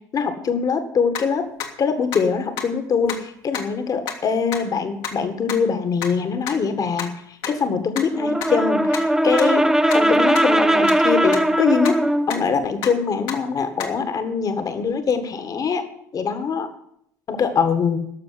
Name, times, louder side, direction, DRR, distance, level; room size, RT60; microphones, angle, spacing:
voice 1, 0.1-1.4 1.8-9.7 9.9-12.0 12.3-15.8 16.1-16.7 17.3-18.1, left 5 dB, 40° left, 9 dB, 1.8 m, -23 dB
sound 1, 1.1-1.2 1.6-1.7 2.1-2.2 2.6-2.7 3.1-3.2 3.5-3.6 4.1-4.2 4.5-4.6 5.0-5.1 5.5-5.6 6.0-6.1 6.5-6.6 7.0-7.1 7.4-7.5 8.0-8.1 8.4-8.5 8.9-9.0 9.4-9.5 9.9-10.0 10.3-10.4 10.9-11.0 11.3-11.4 11.8-11.9 12.3-12.4 12.8-12.9 13.3-13.4 13.8-13.9, left 8 dB, 60° left, 2.0 m, -27 dB
Brass instrument, 8.1-12.3, right 1 dB, 5° right, 1.2 m, -19 dB
12.0 x 7.0 x 9.5 m, 0.72 s
figure-of-eight pair, 65°, 10 cm